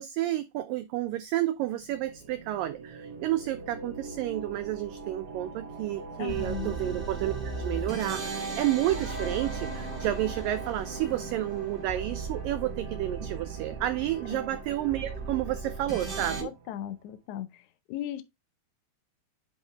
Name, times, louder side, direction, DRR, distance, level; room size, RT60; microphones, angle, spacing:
voice 1, 0.0-16.5, right 14 dB, 85° right, 2.0 m, -31 dB
sound 1, 1.7-17.1, right 4 dB, 60° right, 2.3 m, -44 dB
voice 2, 6.2-6.7 14.3-14.4 16.4-17.5 17.9-18.2, left 11 dB, 85° left, 1.7 m, -36 dB
sound 2, 6.3-16.4, right 4 dB, 20° right, 1.4 m, -36 dB
10.5 x 3.8 x 3.3 m
omnidirectional pair, 4.6 m